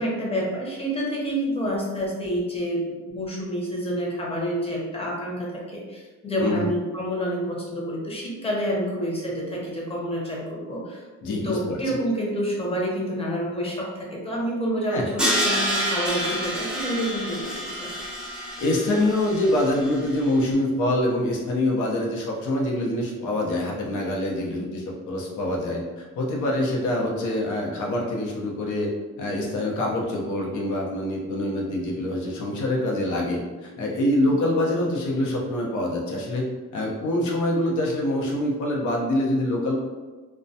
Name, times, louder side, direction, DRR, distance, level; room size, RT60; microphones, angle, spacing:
voice 1, 0.0-17.9 24.5-24.7, equal, 20° left, -3 dB, 0.7 m, -28 dB
voice 2, 11.2-11.8 14.9-15.1 18.6-28.9 29.2-36.5 36.7-39.7, left 1 dB, 75° left, -2 dB, 0.7 m, -25 dB
Crash cymbal, 15.2-20.2, equal, 5° right, 0.4 m, -28 dB
2.2 x 2.2 x 2.6 m, 1.3 s
cardioid pair, 90°, 30 cm